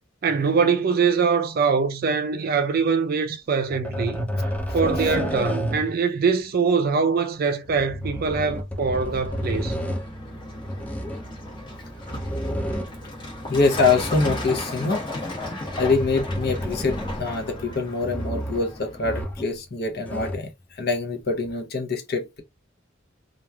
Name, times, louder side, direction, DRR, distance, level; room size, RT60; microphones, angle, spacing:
voice 1, 0.2-4.5 4.7-9.8, right 5 dB, 50° right, 0.4 m, -23 dB
sound 1, 3.7-6.0 7.6-10.1 10.6-11.3 12.0-13.0 13.5-14.8 15.4-17.4 18.0-18.7 19.0-19.6 19.8-20.5 21.4-21.5, equal, 10° left, 0.4 m, -31 dB
Truck, 9.0-19.2, left 1 dB, 25° left, 1.0 m, -35 dB
voice 2, 13.4-15.0 15.8-22.4, left 3 dB, 55° left, 0.8 m, -24 dB
3.0 x 2.5 x 2.2 m
head